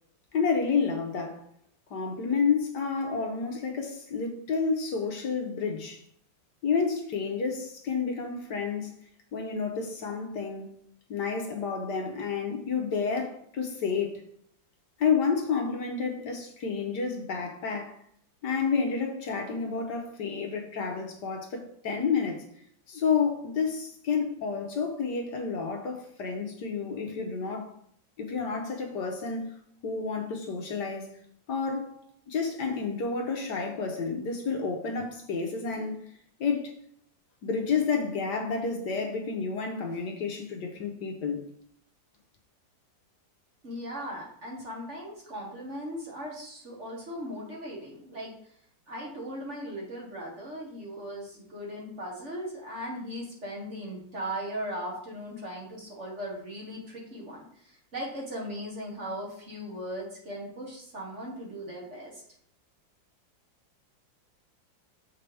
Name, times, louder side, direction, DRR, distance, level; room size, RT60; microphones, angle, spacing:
voice 1, 0.3-1.4 1.9-6.0 6.6-9.0 9.3-10.7 11.1-14.2 15.0-17.9 18.4-22.4 22.9-27.7 28.2-29.5 29.8-31.2 31.5-36.1 36.4-36.7 37.4-41.4, left 5 dB, 65° left, 1.4 m, -30 dB
voice 2, 43.6-48.3 48.9-62.2, equal, 40° right, 1.8 m, -38 dB
6.8 x 5.5 x 3.4 m
omnidirectional pair, 2.1 m